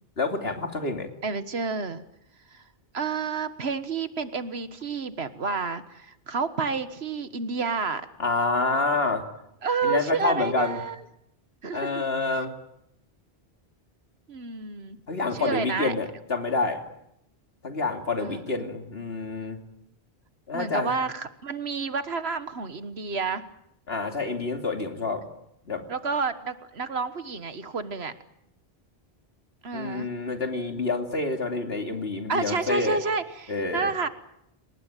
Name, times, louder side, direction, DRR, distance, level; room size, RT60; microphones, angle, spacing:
voice 1, 0.2-1.1 8.2-9.2 9.8-10.8 11.7-12.5 15.1-16.8 17.6-19.6 20.5-20.9 23.9-25.3 25.7-25.8 29.7-33.0 33.5-33.9, left 3 dB, 70° left, 5 dB, 3.1 m, -28 dB
voice 2, 1.2-2.0 2.5-2.6 2.9-8.1 9.6-11.0 11.6-12.0 14.3-15.0 15.3-15.9 18.2-18.4 20.5-23.4 25.9-28.1 29.6-30.1 32.3-34.1, right 4 dB, 75° right, 12 dB, 1.7 m, -30 dB
30.0 x 19.0 x 9.2 m, 0.79 s
omnidirectional pair, 1.1 m